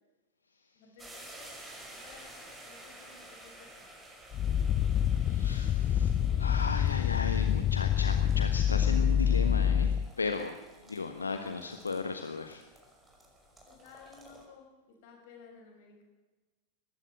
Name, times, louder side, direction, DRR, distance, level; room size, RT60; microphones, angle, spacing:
voice 1, 0.7-3.9 11.3-11.4 13.6-16.0, left 6 dB, 50° left, 3 dB, 6.4 m, -55 dB
sound 1, 1.0-14.4, right 1 dB, 10° right, 5.6 m, -53 dB
sound 2, 4.3-10.1, left 9 dB, 30° left, 0.6 m, -27 dB
voice 2, 5.1-10.5 10.9-12.6, left 4 dB, 75° left, 7 dB, 1.3 m, -36 dB
20.0 x 15.5 x 9.1 m, 1.2 s
figure-of-eight pair, 90°, 0 cm